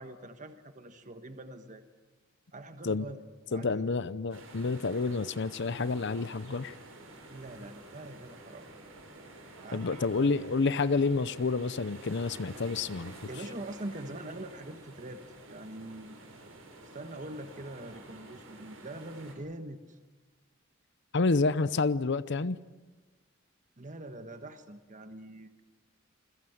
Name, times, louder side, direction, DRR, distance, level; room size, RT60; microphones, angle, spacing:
voice 1, 0.0-1.8 2.5-3.2 3.5-3.9 7.3-8.7 9.6-10.3 10.7-10.8 13.3-16.2 16.8-20.0 23.8-25.5, right 1 dB, 40° right, 1.4 m, -43 dB
voice 2, 3.5-6.7 9.7-13.1 21.1-22.6, left 3 dB, 60° left, 0.7 m, -29 dB
sound 1, 4.3-19.4, right 2 dB, 75° right, 6.8 m, -50 dB
28.5 x 21.5 x 8.0 m
head